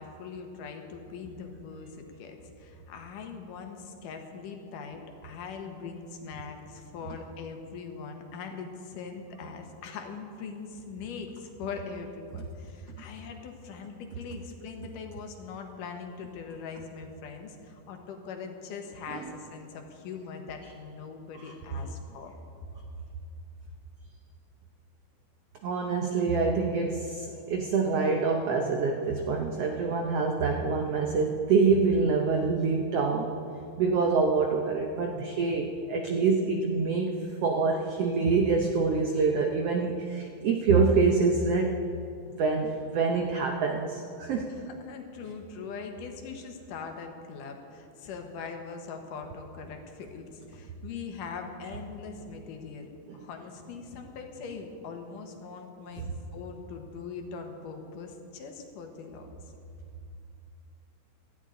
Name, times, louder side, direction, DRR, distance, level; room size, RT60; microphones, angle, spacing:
voice 1, 0.0-22.3 44.6-52.9 53.1-59.3, left 5 dB, 75° left, 4 dB, 2.7 m, -41 dB
voice 2, 25.6-33.3 33.8-37.2 37.4-41.7 42.4-44.6 53.1-53.2, right 4 dB, 80° right, 2 dB, 1.3 m, -26 dB
18.0 x 13.5 x 3.8 m, 2.6 s
omnidirectional pair, 3.9 m